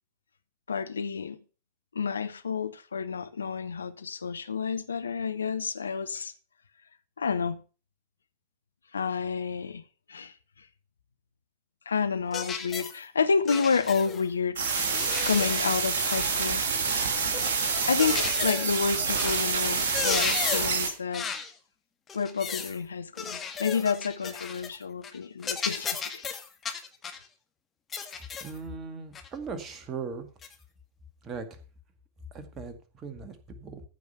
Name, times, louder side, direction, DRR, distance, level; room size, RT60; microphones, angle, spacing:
voice 1, 0.7-1.4 1.9-6.3 7.2-7.6 8.9-9.8 10.1-10.3 11.9-14.6 15.3-16.6 17.9-21.3 22.1-26.2, left 5 dB, 75° left, 0.7 m, -29 dB
sound 1, 12.3-13.0 13.5-14.2 14.7-16.5 17.3-18.8 19.2-19.5 19.8-20.8 21.1-21.5 22.1-22.8 23.2-24.8 25.0-25.2 25.4-27.2 27.9-28.6 29.1-29.3 30.4-30.5, left 6 dB, 20° left, 1.8 m, -35 dB
sound 2, 14.6-20.9, right 5 dB, 60° right, 2.5 m, -27 dB
voice 2, 28.4-30.3 31.2-31.6 32.3-33.8, right 4 dB, 25° right, 2.0 m, -39 dB
14.5 x 5.2 x 6.8 m
figure-of-eight pair, 90°, 0 cm